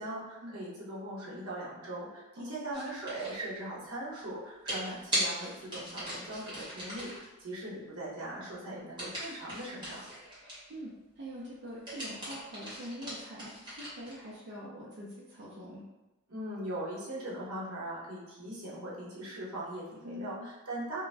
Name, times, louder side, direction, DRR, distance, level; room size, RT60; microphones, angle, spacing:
voice 1, 0.0-10.1 16.3-21.0, right 1 dB, 85° right, -5 dB, 0.9 m, -40 dB
voice 2, 2.4-2.7 10.7-15.9 20.0-20.5, equal, 55° right, -6 dB, 0.5 m, -44 dB
sound 1, 2.7-3.4 4.7-7.3 9.0-10.7 11.7-14.2, equal, 25° right, 1.0 m, -38 dB
2.5 x 2.1 x 3.2 m, 1.1 s
head